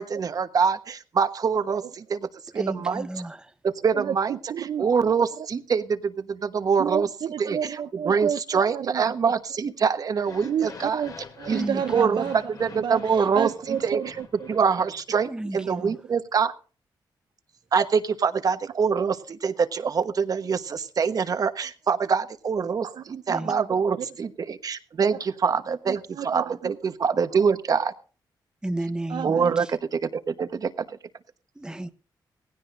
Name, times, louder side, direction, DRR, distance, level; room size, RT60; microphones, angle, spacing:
voice 1, 0.0-2.3 2.5-3.1 3.6-7.1 7.4-11.0 11.5-11.6 11.9-12.2 12.6-14.2 14.5-16.5 17.7-27.9 29.2-31.0, right 6 dB, 50° right, 1.2 m, -25 dB
voice 2, 2.5-3.5 11.5-12.3 15.3-16.0 23.3-23.5 28.6-29.7 31.6-31.9, right 1 dB, 10° right, 1.0 m, -33 dB
voice 3, 3.9-4.9 6.8-9.1 10.4-12.4 12.8-14.5 22.8-23.6 24.0-24.1 25.9-26.7 29.1-29.5, right 8 dB, 65° right, 0.6 m, -31 dB
sound 1, 10.1-15.3, left 4 dB, 50° left, 2.9 m, -45 dB
18.0 x 16.5 x 2.6 m
cardioid pair, 105°, 8 cm